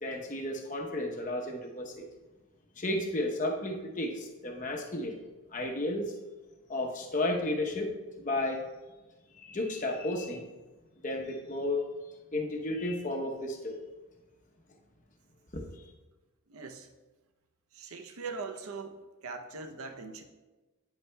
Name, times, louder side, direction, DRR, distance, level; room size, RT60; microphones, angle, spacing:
voice 1, 0.0-2.1 2.8-5.1 5.5-6.1 6.7-8.6 9.4-10.5 11.0-11.8 12.3-13.8 15.5-15.8, left 1 dB, 35° left, 1 dB, 0.9 m, -33 dB
voice 2, 16.5-16.9 17.7-18.9 19.2-20.2, right 4 dB, 85° right, 6 dB, 0.7 m, -41 dB
9.0 x 8.1 x 2.3 m, 1.2 s
head